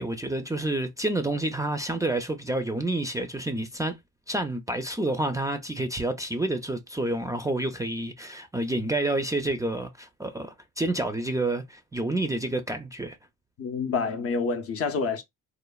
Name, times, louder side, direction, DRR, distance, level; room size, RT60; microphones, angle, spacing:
voice 1, 0.0-3.9 4.3-13.2, right 1 dB, 10° right, 0.3 m, -29 dB
voice 2, 13.6-15.2, left 4 dB, 50° left, 0.6 m, -28 dB
3.1 x 2.1 x 2.3 m
cardioid pair, 90°, 30 cm